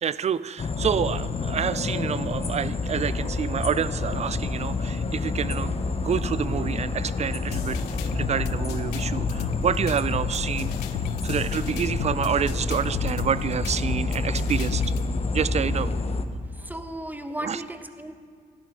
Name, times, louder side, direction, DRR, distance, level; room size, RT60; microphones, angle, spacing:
voice 1, 0.0-7.8 8.1-10.7 11.2-14.8 15.3-15.9 17.4-17.6, right 8 dB, 35° right, 17 dB, 0.4 m, -28 dB
sound 1, 0.6-16.2, left 3 dB, 30° left, 0.8 m, -28 dB
sound 2, 7.5-15.1, left 10 dB, 80° left, 0.4 m, -35 dB
voice 2, 16.5-18.1, right 1 dB, 10° right, 8 dB, 1.1 m, -35 dB
12.0 x 11.5 x 3.7 m, 2.1 s
hypercardioid pair, 50°, 20 cm